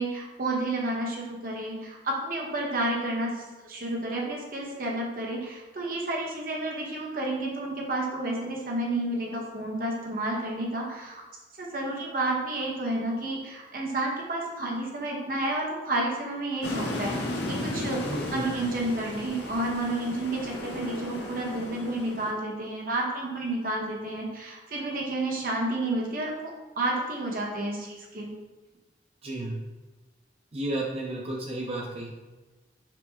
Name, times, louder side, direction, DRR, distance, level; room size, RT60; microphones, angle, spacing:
voice 1, 0.0-11.2 11.6-17.1 17.5-28.3, right 2 dB, 50° right, -1 dB, 0.9 m, -31 dB
sound 1, 16.6-22.3, left 1 dB, 75° left, 0.6 m, -35 dB
voice 2, 18.0-18.5 29.2-29.6 30.5-32.1, right 1 dB, 30° right, -2 dB, 0.5 m, -32 dB
5.9 x 2.1 x 3.4 m, 1.2 s
head